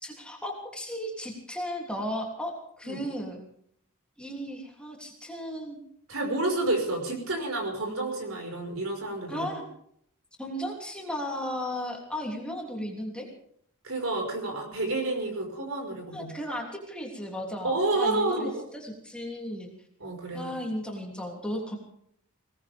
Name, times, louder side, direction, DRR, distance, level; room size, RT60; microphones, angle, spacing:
voice 1, 0.0-3.4 4.2-5.8 9.3-9.6 10.4-13.3 16.1-19.7 20.3-21.8, equal, 5° left, -1 dB, 3.2 m, -35 dB
voice 2, 6.1-9.5 13.8-16.3 17.6-18.6 20.0-20.5, right 2 dB, 70° right, 3 dB, 5.5 m, -29 dB
21.5 x 18.5 x 3.7 m, 0.67 s
head